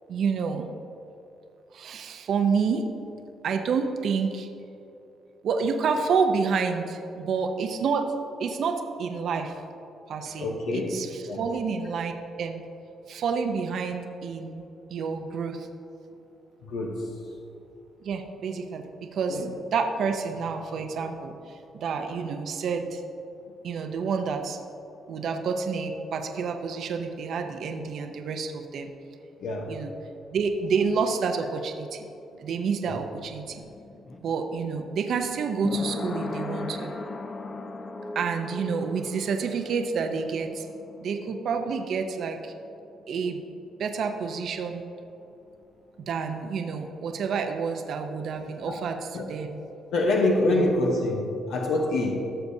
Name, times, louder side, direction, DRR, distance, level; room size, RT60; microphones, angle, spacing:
voice 1, 0.1-0.7 1.7-2.9 3.4-4.5 5.4-8.1 8.4-9.6 10.1-12.1 12.4-12.6 13.1-14.6 14.9-15.7 18.0-19.4 19.7-23.0 23.6-24.6 25.1-28.9 29.7-29.9 30.3-32.1 32.4-33.6 34.2-36.9 38.1-40.7 41.0-42.5 43.1-43.4 43.8-44.8 46.1-49.6 50.5-50.7, right 5 dB, 65° right, 5 dB, 0.7 m, -29 dB
voice 2, 10.4-11.0 11.3-11.4 16.6-17.1 19.3-19.5 29.4-29.7 32.9-33.0 48.7-48.8 49.1-49.3 49.9-52.1, left 2 dB, 80° left, 0 dB, 0.9 m, -26 dB
sound 1, 32.5-44.1 44.3-44.4, left 3 dB, 40° left, 0.7 m, -38 dB
15.0 x 6.7 x 2.7 m, 2.8 s
cardioid pair, 90°, 0 cm